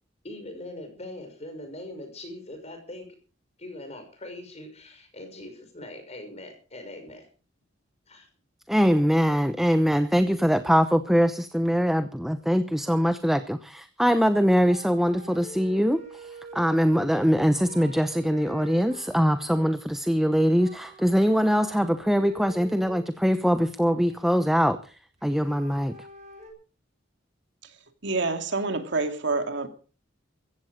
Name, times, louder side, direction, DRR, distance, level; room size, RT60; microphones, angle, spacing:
voice 1, 0.2-3.1 3.6-7.3 8.1-8.3, left 1 dB, 35° left, 6.1 m, -41 dB
voice 2, 8.7-26.0, equal, ahead, 0.8 m, -23 dB
sound 1, 14.1-14.3 14.6-17.2 17.6-19.8 20.5-23.1 23.5-24.5 25.2-26.5, right 1 dB, 40° right, 6.5 m, -45 dB
voice 3, 28.0-29.7, right 3 dB, 65° right, 2.5 m, -27 dB
15.5 x 15.0 x 5.1 m
head